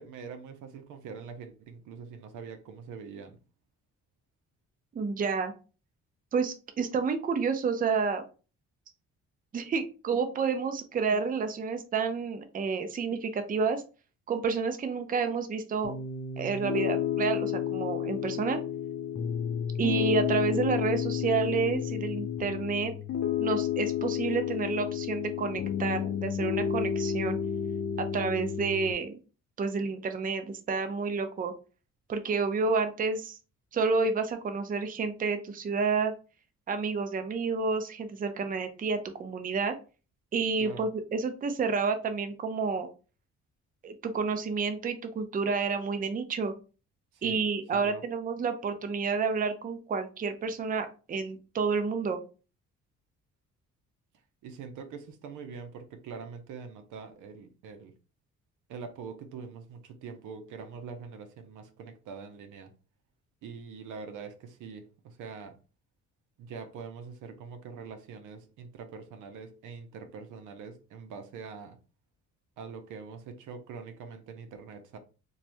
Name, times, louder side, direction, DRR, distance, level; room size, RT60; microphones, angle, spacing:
voice 1, 0.0-3.4 40.6-40.9 47.1-47.4 47.7-48.0 54.4-57.9 58.7-62.7 63.4-65.6 66.4-71.8 72.6-75.0, right 5 dB, 85° right, 0.6 m, -44 dB
voice 2, 4.9-5.5 6.3-8.2 9.5-13.8 14.3-15.9 16.4-18.6 19.8-22.9 23.4-27.4 28.0-29.2 29.6-31.5 32.1-33.4 33.7-36.1 36.7-39.8 40.3-42.9 43.8-46.5 47.2-52.2, right 5 dB, 30° right, 0.5 m, -30 dB
Piano, 15.8-28.9, left 8 dB, 55° left, 0.6 m, -31 dB
3.0 x 2.2 x 2.5 m
cardioid pair, 90°, 30 cm